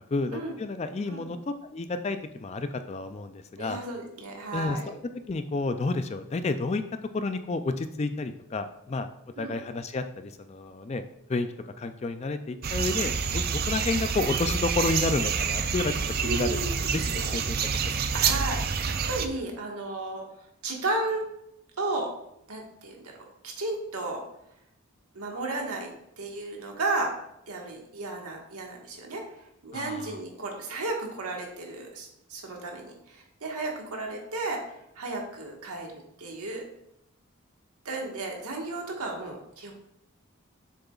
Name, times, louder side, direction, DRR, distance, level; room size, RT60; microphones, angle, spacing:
voice 1, 0.1-3.8 4.5-5.0 5.3-6.8 7.1-9.1 9.4-11.0 11.3-11.5 11.8-15.9 16.2-17.7 18.2-18.4 29.7-30.2, left 3 dB, 30° left, 9 dB, 0.3 m, -30 dB
voice 2, 3.6-4.9 9.4-9.5 16.2-17.3 18.1-20.2 20.6-21.3 21.8-22.1 22.5-23.1 23.4-24.2 25.1-27.1 27.5-29.2 29.6-34.6 35.0-35.9 36.2-36.6 37.8-39.7, right 2 dB, 85° right, 0 dB, 1.6 m, -34 dB
sound 1, 12.6-19.3, right 6 dB, 45° right, 0.4 m, -28 dB
7.6 x 6.7 x 2.4 m, 0.80 s
head